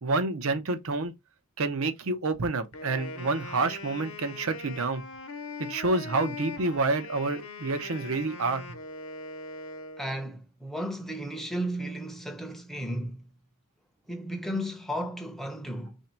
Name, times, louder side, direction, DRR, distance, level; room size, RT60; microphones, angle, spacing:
voice 1, 0.0-1.1 1.6-5.0 5.7-8.8, right 3 dB, 70° right, 0.7 m, -28 dB
Wind instrument woodwind instrument, 2.7-10.3, left 3 dB, 65° left, 0.8 m, -41 dB
voice 2, 10.0-13.3 14.1-16.0, equal, ahead, 0.6 m, -34 dB
3.4 x 2.7 x 4.3 m
head